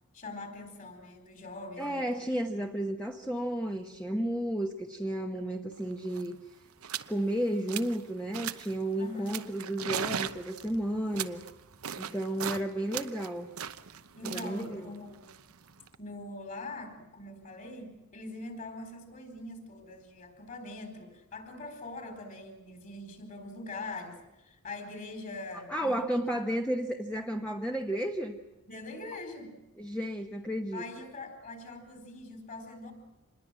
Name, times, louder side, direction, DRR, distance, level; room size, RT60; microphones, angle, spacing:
voice 1, 0.1-2.6 9.0-9.3 12.5-12.6 14.2-15.3 16.0-26.2 28.6-29.6 30.7-32.9, left 2 dB, 40° left, 6 dB, 4.5 m, -43 dB
voice 2, 1.8-6.4 7.1-11.4 12.0-13.5 14.3-14.9 25.5-28.4 29.8-30.8, right 1 dB, 5° left, 3 dB, 1.0 m, -32 dB
sound 1, 5.8-5.9 6.1-6.3 6.8-7.1 7.5-8.0 8.3-8.8 9.3-12.6 12.9-16.0, right 8 dB, 85° right, 0.9 m, -38 dB
26.5 x 21.0 x 7.6 m, 0.99 s
head